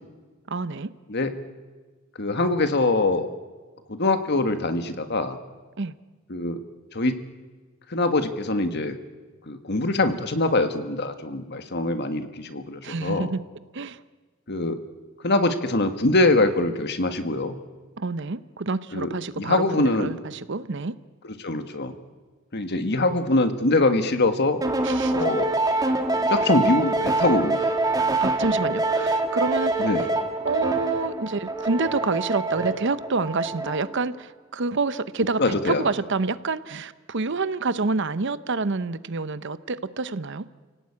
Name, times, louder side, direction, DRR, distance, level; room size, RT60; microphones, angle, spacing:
voice 1, 0.5-0.9 5.8-5.9 12.8-13.4 13.7-14.0 18.0-20.9 24.8-25.2 28.2-29.9 30.4-40.5, right 3 dB, 60° right, 14 dB, 0.8 m, -28 dB
voice 2, 2.2-3.3 3.9-5.4 6.3-6.6 6.9-7.2 7.9-9.0 9.5-13.3 14.5-14.8 15.2-17.6 18.9-19.1 19.4-20.1 21.4-21.9 22.5-24.6 25.1-25.5 26.2-27.7 29.8-30.1 35.4-35.8, left 2 dB, 55° left, 8 dB, 1.7 m, -23 dB
sound 1, 24.6-34.0, right 2 dB, 20° right, 2.2 m, -25 dB
30.0 x 18.0 x 8.7 m, 1.4 s
head